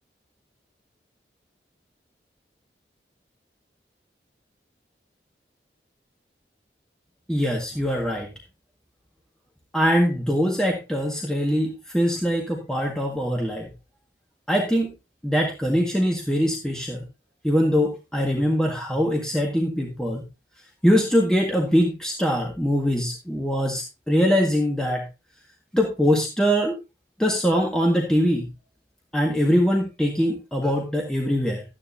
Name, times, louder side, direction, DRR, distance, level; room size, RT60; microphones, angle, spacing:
voice 1, 7.3-8.3 9.7-13.7 14.5-14.9 15.2-17.0 17.4-20.2 20.8-25.0 25.7-26.8 27.2-28.5 29.1-31.6, equal, 5° left, 0 dB, 1.7 m, -22 dB
13.5 x 9.7 x 2.7 m, 0.27 s
head